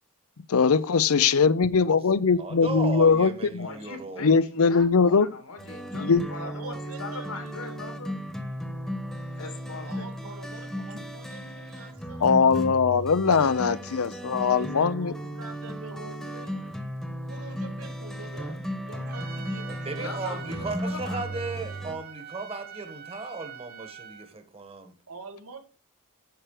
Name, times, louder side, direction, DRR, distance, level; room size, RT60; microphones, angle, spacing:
voice 1, 0.5-3.7 4.2-5.3 6.0-6.2 12.2-15.1, left 5 dB, 70° left, 0.6 m, -21 dB
voice 2, 2.4-4.2 19.7-24.9, right 3 dB, 25° right, 1.5 m, -36 dB
voice 3, 3.6-8.1 9.4-10.1 20.0-21.6, left 3 dB, 85° left, 2.5 m, -40 dB
sound 1, 5.6-21.9, equal, ahead, 1.2 m, -35 dB
voice 4, 6.4-7.9 9.8-13.7 14.5-16.7 17.3-20.6 21.3-21.8 25.1-25.6, right 3 dB, 75° right, 1.7 m, -46 dB
Trumpet, 19.1-24.3, right 8 dB, 45° right, 1.0 m, -44 dB
9.3 x 6.2 x 4.8 m
head